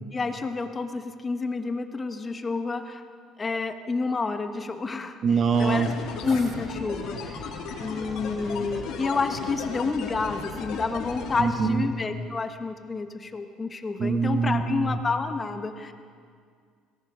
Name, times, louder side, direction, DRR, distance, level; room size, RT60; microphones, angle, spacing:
voice 1, 0.1-3.0 3.4-5.2 5.6-5.9 6.2-15.9, left 4 dB, 25° left, 7 dB, 1.4 m, -29 dB
voice 2, 5.2-5.9 11.4-11.9 14.0-15.0, right 5 dB, 45° right, 7 dB, 1.4 m, -24 dB
sound 1, 5.5-11.4, left 5 dB, 70° left, 3.6 m, -35 dB
24.5 x 19.0 x 5.6 m, 2.1 s
cardioid pair, 110°, 0 cm